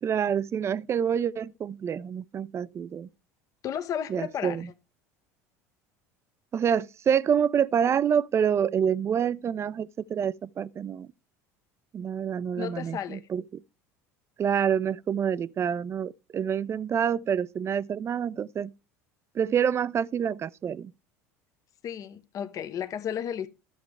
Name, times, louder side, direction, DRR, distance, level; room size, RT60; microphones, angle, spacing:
voice 1, 0.0-3.1 4.1-4.7 6.5-11.1 11.9-13.6 14.4-18.7 19.3-20.9, right 8 dB, 35° right, 0.5 m, -27 dB
voice 2, 3.6-4.7 12.5-13.2 21.8-23.5, left 9 dB, 45° left, 0.8 m, -33 dB
12.5 x 6.9 x 3.3 m
hypercardioid pair, 75°, 8 cm